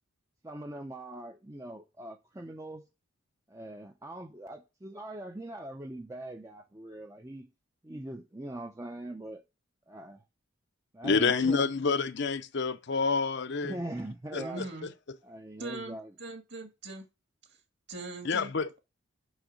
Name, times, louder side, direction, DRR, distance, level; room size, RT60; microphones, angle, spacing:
voice 1, 0.4-2.9 3.5-7.5 7.8-9.4 9.9-10.2 10.9-11.7 13.6-14.7 15.2-16.1, right 1 dB, 15° right, 0.6 m, -41 dB
voice 2, 11.0-13.8 14.3-14.7 18.2-18.8, left 4 dB, 55° left, 0.6 m, -28 dB
voice 3, 14.4-14.9 15.6-17.0 17.9-18.5, right 2 dB, 55° right, 2.3 m, -41 dB
6.4 x 6.2 x 6.3 m
head